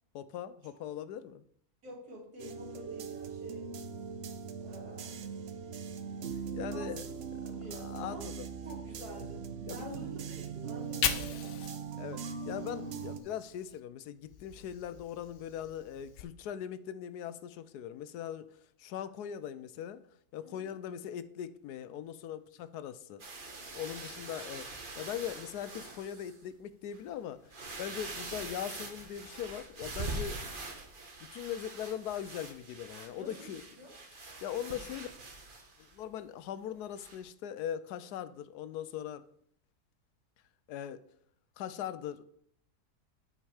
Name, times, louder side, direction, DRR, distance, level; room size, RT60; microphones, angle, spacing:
voice 1, 0.1-1.4 6.3-7.0 7.7-8.5 9.7-10.1 12.0-18.5 18.8-20.1 20.3-23.2 23.7-27.5 27.8-30.5 31.3-33.6 34.4-35.1 35.8-39.2 40.7-41.0 41.6-42.2, left 10 dB, 85° left, 1.2 m, -40 dB
voice 2, 1.8-3.7 4.6-5.3 6.7-6.9 7.4-8.3 8.6-11.8 20.4-20.7 33.2-33.9, right 1 dB, 75° right, 3.1 m, -49 dB
sound 1, 2.4-13.2, right 6 dB, 55° right, 0.8 m, -40 dB
Fire, 10.6-13.8 14.2-16.2, left 7 dB, 55° left, 1.0 m, -39 dB
sound 2, 23.2-26.4 26.9-27.0 27.4-36.0 37.0-37.2, right 3 dB, 35° right, 1.3 m, -44 dB
9.0 x 5.4 x 4.8 m
omnidirectional pair, 1.6 m